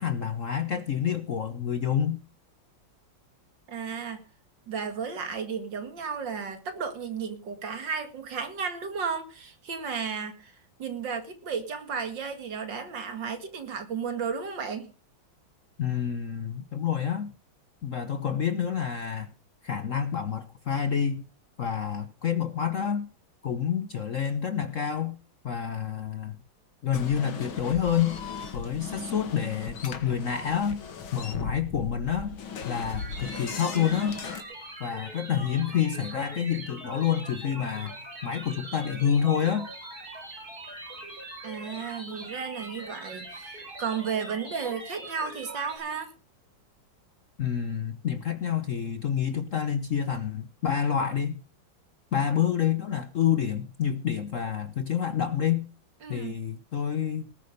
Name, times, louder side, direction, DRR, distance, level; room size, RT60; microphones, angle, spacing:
voice 1, 0.0-2.2 15.8-17.3 17.8-19.3 19.6-21.2 21.6-23.1 23.4-25.2 25.4-26.4 26.8-28.2 28.5-30.8 31.1-32.4 32.6-34.2 34.8-37.9 38.2-39.7 47.4-51.4 52.1-55.7 56.1-57.3, left 8 dB, 55° left, 12 dB, 0.9 m, -28 dB
voice 2, 3.7-4.2 4.7-10.5 10.8-14.9 41.4-46.1 56.0-56.4, right 6 dB, 65° right, 8 dB, 2.6 m, -33 dB
sound 1, 26.9-34.4, left 5 dB, 80° left, 2.6 m, -37 dB
sound 2, 33.0-45.8, right 1 dB, 45° right, 6.7 m, -42 dB
19.0 x 8.6 x 5.2 m, 0.35 s
omnidirectional pair, 2.2 m